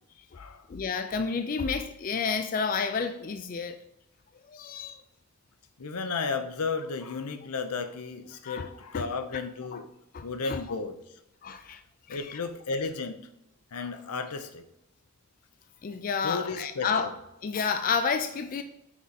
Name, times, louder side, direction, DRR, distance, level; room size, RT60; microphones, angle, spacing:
voice 1, 0.7-3.8 4.5-5.0 8.4-9.1 9.7-9.8 10.1-10.6 11.4-11.8 12.1-12.4 15.8-17.1 17.4-18.6, left 5 dB, 40° left, 8 dB, 0.3 m, -30 dB
voice 2, 5.8-9.8 10.2-11.0 12.1-13.2 13.7-14.7 16.2-17.1, left 4 dB, 85° left, 8 dB, 0.7 m, -33 dB
6.0 x 4.6 x 4.1 m, 0.84 s
head